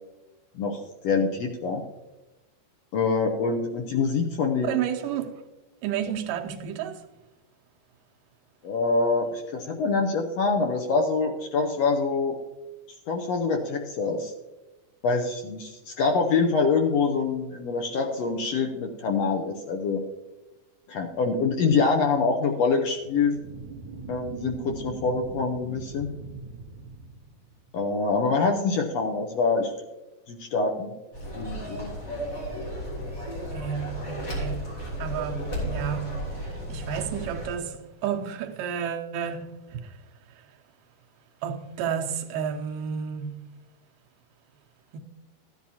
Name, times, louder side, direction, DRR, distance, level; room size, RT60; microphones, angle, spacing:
voice 1, 0.5-1.8 2.9-4.7 8.6-12.4 13.1-14.3 15.0-20.0 20.9-23.4 24.1-26.1 27.7-29.7 30.3-30.9 31.4-31.9, left 4 dB, 70° left, 1.6 m, -25 dB
voice 2, 4.6-5.4 5.8-7.1 33.5-40.0 40.3-40.4 41.4-43.6 44.9-45.0, right 8 dB, 85° right, 2.5 m, -32 dB
sound 1, 23.0-27.9, right 4 dB, 45° right, 2.0 m, -41 dB
sound 2, 31.1-37.5, right 1 dB, 35° left, 4.0 m, -33 dB
14.5 x 10.5 x 2.8 m
omnidirectional pair, 3.7 m